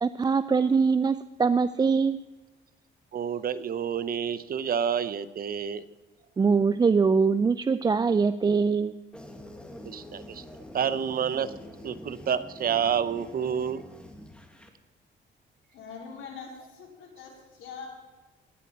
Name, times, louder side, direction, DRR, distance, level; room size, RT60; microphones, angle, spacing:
voice 1, 0.0-2.2 6.4-9.0, right 5 dB, 20° right, 13 dB, 0.3 m, -23 dB
voice 2, 3.1-5.8 9.8-10.4 10.7-11.5 11.8-13.8, right 8 dB, 45° right, 14 dB, 0.7 m, -29 dB
sound 1, 9.1-14.7, left 1 dB, 5° left, 1.6 m, -45 dB
voice 3, 15.7-17.9, left 5 dB, 80° left, -2 dB, 3.9 m, -43 dB
18.0 x 9.7 x 4.3 m, 1.2 s
cardioid pair, 90°, 20 cm